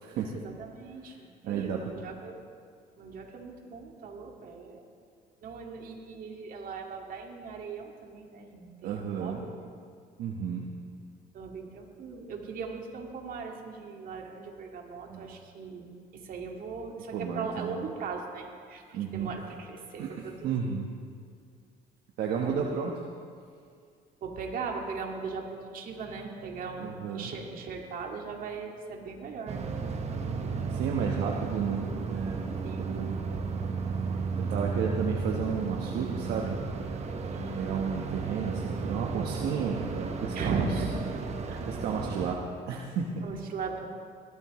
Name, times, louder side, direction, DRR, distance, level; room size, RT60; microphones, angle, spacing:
voice 1, 0.0-2.5 3.0-4.8 5.4-9.7 11.3-20.7 22.4-22.7 24.2-29.7 32.6-32.9 37.3-37.7 40.3-41.0 41.5-41.7 43.2-43.8, right 4 dB, 55° right, 1 dB, 2.1 m, -39 dB
voice 2, 1.4-1.8 8.8-9.4 10.2-10.7 15.1-15.3 17.1-17.8 18.9-19.3 20.0-20.9 22.2-22.9 26.8-27.3 30.7-32.4 32.8-33.2 34.4-36.6 37.6-40.6 41.7-42.4 42.7-43.3, right 6 dB, 75° right, 0 dB, 1.2 m, -32 dB
sound 1, 29.5-42.4, right 4 dB, 40° right, 1.2 m, -34 dB
20.0 x 13.5 x 3.1 m, 2.2 s
cardioid pair, 110°, 17 cm